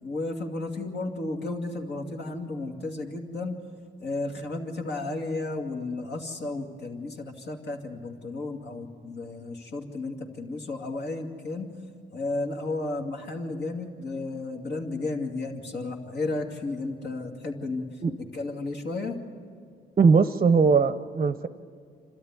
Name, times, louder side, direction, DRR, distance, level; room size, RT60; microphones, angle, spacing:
voice 1, 0.0-3.6 4.0-11.7 12.1-17.9 18.3-19.2, left 2 dB, 60° left, 2 dB, 2.5 m, -33 dB
voice 2, 20.0-21.5, right 5 dB, 35° right, 12 dB, 0.7 m, -20 dB
28.5 x 13.0 x 9.6 m, 2.2 s
cardioid pair, 90°, 20 cm